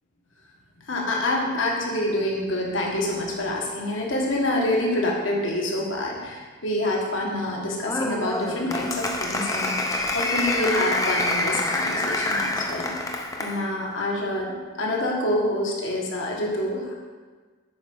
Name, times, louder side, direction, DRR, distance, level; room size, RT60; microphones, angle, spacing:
voice 1, 0.9-16.9, left 1 dB, 70° left, -1 dB, 1.6 m, -27 dB
Applause, 7.8-13.6, left 2 dB, 15° left, 0.6 m, -26 dB
8.8 x 4.8 x 5.5 m, 1.4 s
head